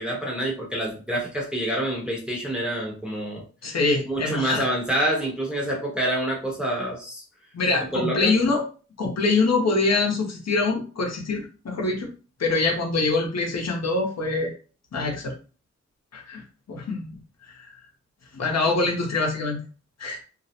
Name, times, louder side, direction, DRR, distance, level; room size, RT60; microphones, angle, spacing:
voice 1, 0.0-3.4 4.0-7.2 7.9-8.3, right 1 dB, 5° right, -3 dB, 0.8 m, -27 dB
voice 2, 3.6-4.7 7.5-8.6 9.0-12.1 12.4-14.5 14.9-15.3 16.1-17.1 17.5-17.8 18.3-19.6 20.0-20.2, left 3 dB, 65° left, 0 dB, 0.6 m, -24 dB
2.3 x 2.0 x 2.7 m, 0.37 s
wide cardioid pair, 105°, 29 cm